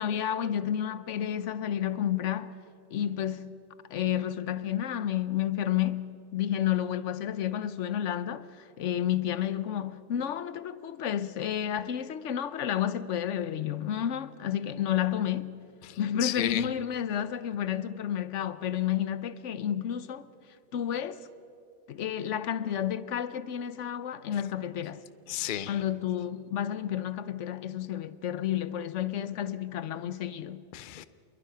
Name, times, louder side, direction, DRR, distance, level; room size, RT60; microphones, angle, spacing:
voice 1, 0.0-2.5 2.9-3.5 3.9-8.5 8.8-15.6 16.0-20.3 20.7-21.2 21.9-25.0 25.7-30.6, left 10 dB, 85° left, 1.1 m, -31 dB
voice 2, 15.8-16.7 24.3-24.4 25.3-25.8 30.7-31.1, left 12 dB, 50° left, 0.7 m, -34 dB
26.5 x 22.0 x 5.7 m
omnidirectional pair, 1.2 m